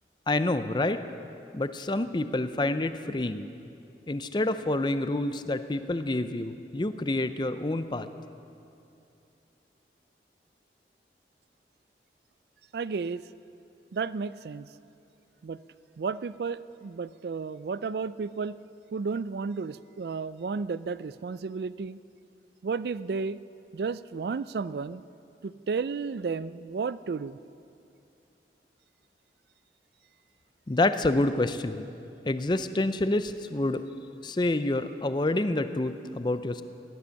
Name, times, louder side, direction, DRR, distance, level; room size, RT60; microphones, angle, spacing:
voice 1, 0.3-1.0 1.5-3.5 4.1-8.1 30.7-31.9 32.2-33.9 34.2-36.6, left 2 dB, 25° left, 11 dB, 0.5 m, -28 dB
voice 2, 12.7-13.3 13.9-14.7 15.4-15.6 16.0-18.6 18.9-22.0 22.6-23.4 23.7-25.0 25.4-27.4, right 5 dB, 65° right, 16 dB, 0.4 m, -32 dB
17.0 x 11.0 x 6.4 m, 2.6 s
head